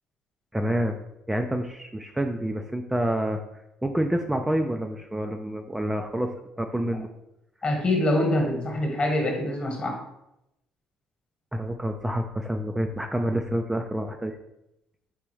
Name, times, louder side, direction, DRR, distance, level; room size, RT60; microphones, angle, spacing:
voice 1, 0.5-1.0 1.3-3.4 3.8-7.1 11.5-14.4, right 1 dB, 10° right, 4 dB, 0.3 m, -28 dB
voice 2, 7.6-10.0, left 1 dB, 35° left, 2 dB, 1.2 m, -25 dB
4.0 x 3.4 x 3.1 m, 0.86 s
supercardioid pair, 70°, 3 cm